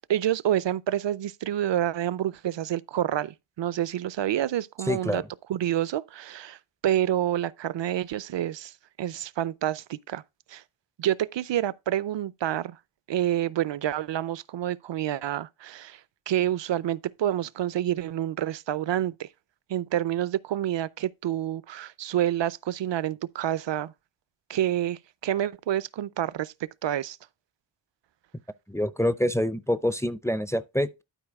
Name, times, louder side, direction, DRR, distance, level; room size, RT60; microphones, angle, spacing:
voice 1, 0.0-5.2 5.5-6.6 6.8-8.7 9.0-10.2 10.5-10.6 11.0-12.8 13.1-16.0 16.3-19.3 19.7-23.9 24.5-26.5 26.8-27.2, right 11 dB, 70° right, 0.5 m, -28 dB
voice 2, 4.9-5.3 28.7-31.0, equal, 5° left, 0.4 m, -26 dB
12.0 x 4.7 x 3.5 m
wide cardioid pair, 105°, 47 cm